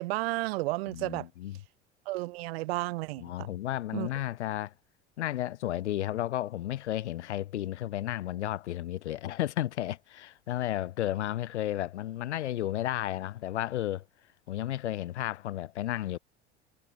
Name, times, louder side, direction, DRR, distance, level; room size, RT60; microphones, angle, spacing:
voice 1, 0.0-1.3 2.1-3.5 3.9-4.1, right 21 dB, 60° right, 0.7 m, -32 dB
voice 2, 0.9-1.6 3.2-4.7 5.2-14.0 14.5-16.2, left 13 dB, 70° left, 0.7 m, -33 dB
figure-of-eight pair, 70°, 35 cm